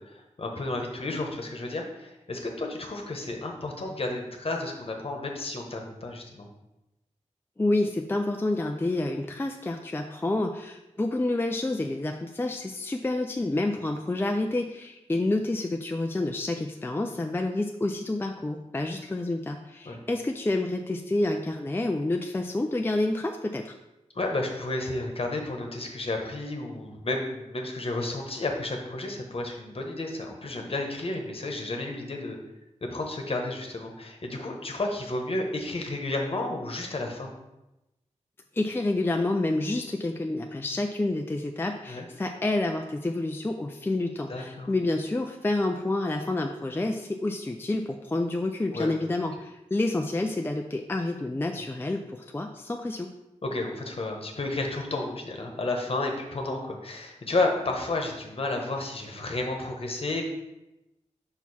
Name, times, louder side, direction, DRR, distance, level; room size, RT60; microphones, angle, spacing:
voice 1, 0.0-6.5 19.8-20.0 24.1-32.4 32.9-37.3 41.9-42.1 44.3-44.7 48.7-48.9 53.4-60.2, left 2 dB, 50° left, 2 dB, 1.1 m, -32 dB
voice 2, 7.6-23.7 38.5-53.1, left 2 dB, 20° left, 4 dB, 0.4 m, -29 dB
5.7 x 4.6 x 4.2 m, 0.95 s
wide cardioid pair, 80°, 12 cm